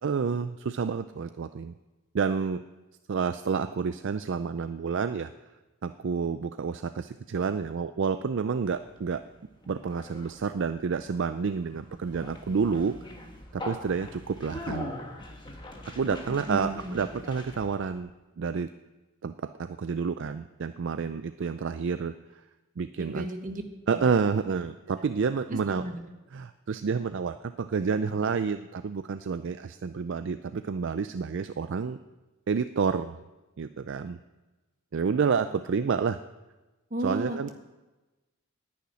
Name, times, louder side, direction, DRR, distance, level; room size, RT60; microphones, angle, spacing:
voice 1, 0.0-1.7 2.1-2.6 3.1-5.3 5.8-9.2 9.7-13.0 13.5-14.9 15.9-18.1 18.4-18.7 19.2-22.1 22.8-23.3 23.9-25.8 26.3-32.0 32.5-33.1 33.6-34.2 34.9-36.2 37.0-37.5, right 5 dB, 55° right, 11 dB, 0.4 m, -29 dB
Conversation, 8.5-18.0, left 1 dB, 20° left, 1.5 m, -42 dB
voice 2, 16.3-17.0 23.0-23.6 23.9-24.0 25.0-25.1 25.5-26.0 36.9-37.5, right 1 dB, 40° right, 4 dB, 1.4 m, -34 dB
10.5 x 8.4 x 9.5 m, 1.1 s
head